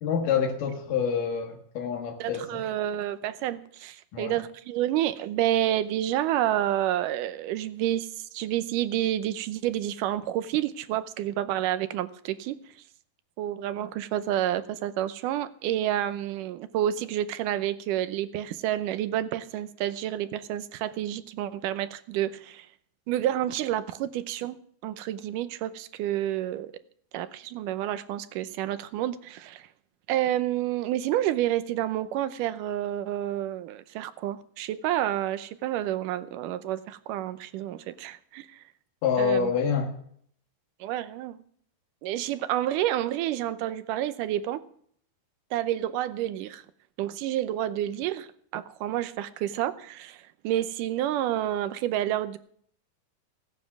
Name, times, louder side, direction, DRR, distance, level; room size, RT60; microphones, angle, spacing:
voice 1, 0.0-2.6 4.1-4.4 39.0-39.9, left 6 dB, 85° left, 3 dB, 3.2 m, -27 dB
voice 2, 2.2-12.6 13.4-22.7 23.1-24.6 24.8-26.7 27.1-29.7 30.1-38.6 39.2-39.5 40.8-41.4 42.0-44.6 45.5-46.6 47.0-48.3 48.5-52.4, right 12 dB, 85° right, 12 dB, 2.3 m, -29 dB
16.0 x 9.4 x 6.0 m, 0.62 s
omnidirectional pair, 3.7 m